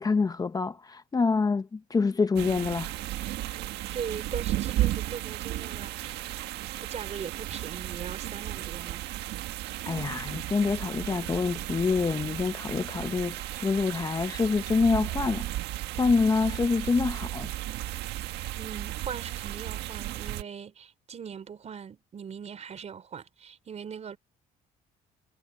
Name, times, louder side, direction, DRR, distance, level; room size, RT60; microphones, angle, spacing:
voice 1, 0.0-2.9 9.9-15.5 16.0-17.5, left 4 dB, 20° left, 0.7 m, -26 dB
sound 1, 2.4-20.4, right 15 dB, 85° right, 1.5 m, -34 dB
voice 2, 3.9-6.4 6.8-9.0 18.1-24.2, right 7 dB, 40° right, 3.8 m, -40 dB
cardioid pair, 110°, 17 cm